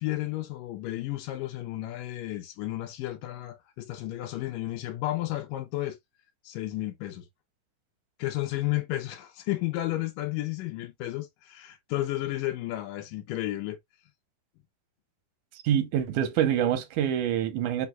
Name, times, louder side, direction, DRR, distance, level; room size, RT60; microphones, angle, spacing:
voice 1, 0.0-6.0 6.4-7.3 8.2-13.8, left 16 dB, 85° left, 2.3 m, -32 dB
voice 2, 15.6-17.9, right 10 dB, 75° right, 2.3 m, -26 dB
5.4 x 4.1 x 2.3 m
omnidirectional pair, 3.8 m